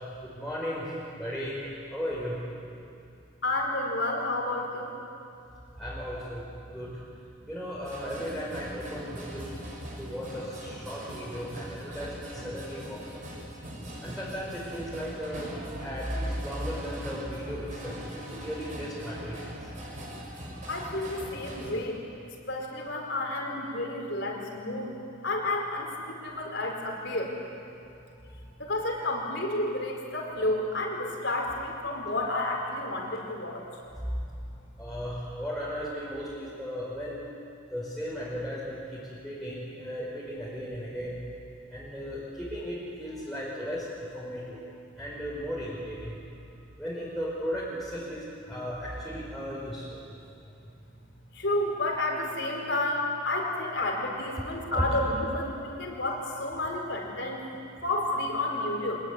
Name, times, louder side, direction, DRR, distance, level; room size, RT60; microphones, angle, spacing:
voice 1, 0.0-2.4 5.8-7.0 7.4-9.6 10.0-13.2 14.0-19.7 27.8-28.4 33.9-34.2 34.8-41.2 41.7-46.4 46.8-50.0 50.4-50.5 54.3-54.4 54.7-55.0, equal, ahead, -9 dB, 4.9 m, -36 dB
voice 2, 3.4-4.9 20.7-22.0 22.5-24.9 25.2-27.3 28.6-33.6 51.3-57.4 57.8-59.0, left 1 dB, 60° left, 1 dB, 4.8 m, -30 dB
sound 1, 7.8-21.7, equal, 40° right, 6.7 m, -41 dB
25.5 x 20.5 x 9.8 m, 2.6 s
head